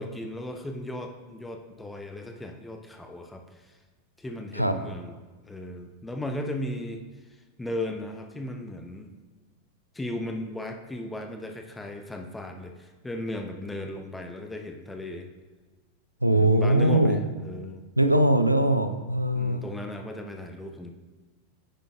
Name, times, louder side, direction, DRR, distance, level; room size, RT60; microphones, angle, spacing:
voice 1, 0.0-3.8 4.2-5.2 5.5-9.1 9.9-15.3 16.3-17.9 19.3-20.9, left 1 dB, 10° left, 4 dB, 0.7 m, -36 dB
voice 2, 16.2-17.2 18.0-19.6, right 1 dB, 90° right, 9 dB, 0.5 m, -21 dB
9.2 x 7.6 x 2.4 m, 1.3 s
figure-of-eight pair, 90°, 0 cm